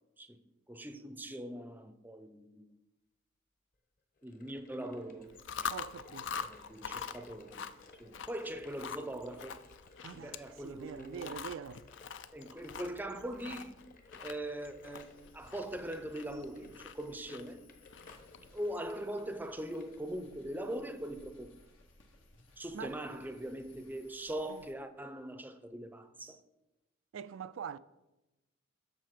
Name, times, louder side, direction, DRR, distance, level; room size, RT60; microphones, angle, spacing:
voice 1, 0.7-2.7 4.2-5.4 6.4-7.7 8.0-9.6 10.1-11.5 12.3-13.9 14.2-17.6 18.5-21.6 22.6-26.4, right 1 dB, 10° right, 0.5 m, -41 dB
sound 1, 4.2-20.0, left 3 dB, 45° left, 1.1 m, -59 dB
Chewing mastication, 5.3-18.5, left 6 dB, 65° left, 0.5 m, -45 dB
voice 2, 5.7-6.5 10.0-11.8 22.7-23.0 24.5-24.6 27.1-27.8, right 7 dB, 85° right, 0.3 m, -44 dB
sound 2, 15.1-24.7, left 2 dB, 85° left, 1.6 m, -62 dB
8.0 x 6.5 x 5.9 m
head